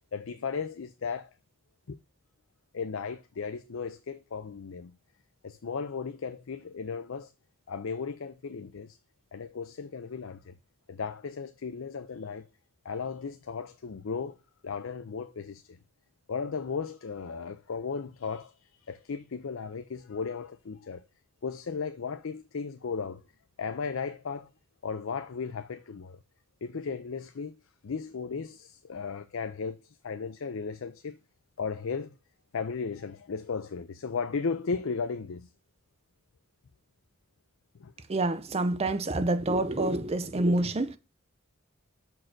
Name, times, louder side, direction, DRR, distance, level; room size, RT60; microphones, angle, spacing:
voice 1, 0.1-1.3 1.9-2.0 2.7-4.9 5.4-7.3 7.7-9.0 9.3-10.5 10.9-12.5 12.8-14.4 14.6-15.8 16.3-21.0 21.4-23.2 23.6-24.5 24.8-26.2 26.6-27.6 27.8-31.2 31.6-32.1 32.5-35.5 37.8-37.9, left 5 dB, 70° left, 0.5 m, -35 dB
voice 2, 38.1-41.0, right 2 dB, 30° right, 0.6 m, -27 dB
6.4 x 4.5 x 5.9 m
head